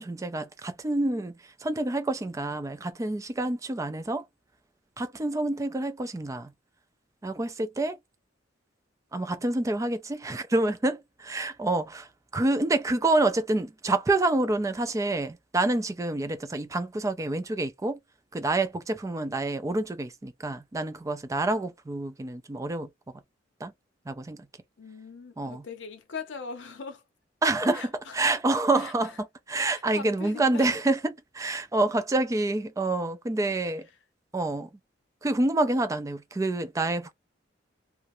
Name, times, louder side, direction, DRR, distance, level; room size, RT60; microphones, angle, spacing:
voice 1, 0.0-1.3 1.6-4.2 5.0-6.5 7.2-8.0 9.1-12.1 12.3-18.0 18.3-22.9 23.6-23.7 24.1-24.5 25.4-25.6 27.4-33.9 34.3-34.7 35.2-37.1, right 2 dB, 15° right, 0.4 m, -27 dB
voice 2, 24.8-27.0 27.7-28.2 28.7-29.2 29.7-30.8, left 5 dB, 70° left, 0.6 m, -41 dB
2.4 x 2.0 x 2.9 m
head